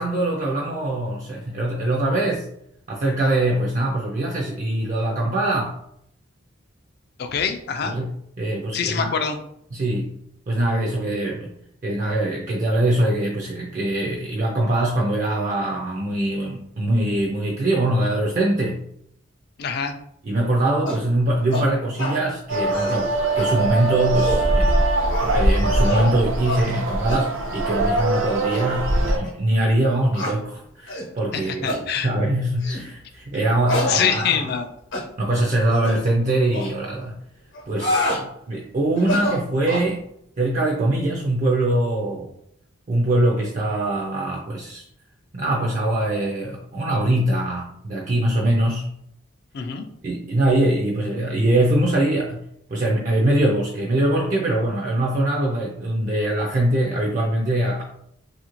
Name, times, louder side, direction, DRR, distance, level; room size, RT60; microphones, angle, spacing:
voice 1, 0.0-2.5 2.9-5.8 7.8-9.1 9.7-10.1 10.5-11.5 11.8-18.9 20.2-24.8 25.2-34.4 35.2-37.2 37.7-40.0 40.4-42.3 42.9-44.8 45.3-48.9 50.0-57.8, right 1 dB, 40° right, -1 dB, 0.4 m, -23 dB
voice 2, 7.2-7.9 8.7-9.4 19.6-19.9 31.3-32.1 33.9-34.7 49.5-49.9, left 7 dB, 50° left, 6 dB, 0.3 m, -24 dB
sound 1, 20.9-21.1 21.5-21.7 22.0-22.2 22.6-23.0 23.4-23.5 24.0-24.5 25.1-25.4 25.8-26.1 26.4-26.6 27.1-27.3 27.8-28.1 28.5-28.6 29.2-29.3 30.1-30.4 30.9-31.1 31.6-31.8 32.6-32.9 33.7-34.6 34.9-35.1 35.7-36.0 36.5-36.7 37.5-38.2 39.0-39.9, left 1 dB, 65° left, 0.8 m, -27 dB
sound 2, 22.5-29.2, right 2 dB, 85° right, 0.6 m, -22 dB
2.7 x 2.5 x 2.9 m, 0.72 s
head